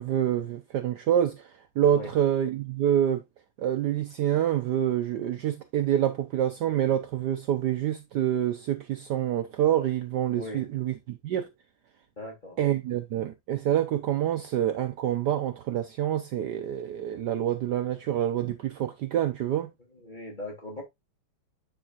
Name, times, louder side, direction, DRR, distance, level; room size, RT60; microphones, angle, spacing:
voice 1, 0.0-3.2 3.6-11.5 12.6-19.7, right 10 dB, 65° right, 1.2 m, -27 dB
voice 2, 10.4-10.7 12.2-12.6 19.9-20.8, left 1 dB, 20° left, 3.3 m, -39 dB
9.7 x 5.5 x 2.5 m
omnidirectional pair, 2.2 m